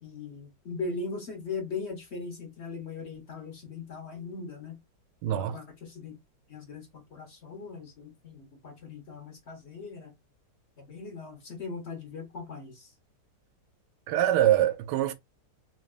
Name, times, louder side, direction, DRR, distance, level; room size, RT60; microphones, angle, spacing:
voice 1, 0.0-4.8 5.3-6.2 6.5-10.1 10.8-12.9, left 4 dB, 45° left, 1.3 m, -39 dB
voice 2, 5.2-5.6 14.1-15.1, right 12 dB, 85° right, 1.2 m, -24 dB
3.9 x 3.3 x 2.4 m
omnidirectional pair, 1.8 m